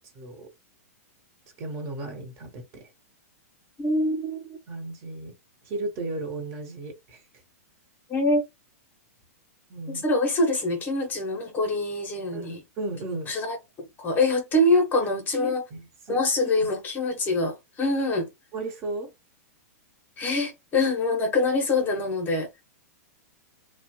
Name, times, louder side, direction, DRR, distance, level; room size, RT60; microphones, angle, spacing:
voice 1, 0.1-0.5 1.6-2.9 4.7-5.3 5.6-7.2 9.7-10.0 12.3-13.3 15.3-16.7 18.5-19.1, right 2 dB, 35° right, 1.0 m, -35 dB
voice 2, 3.8-4.6 8.1-8.4 9.9-12.6 13.3-15.6 16.1-18.3 20.2-22.5, left 2 dB, 20° left, 0.7 m, -25 dB
2.9 x 2.1 x 2.9 m
hypercardioid pair, 135°, 8 cm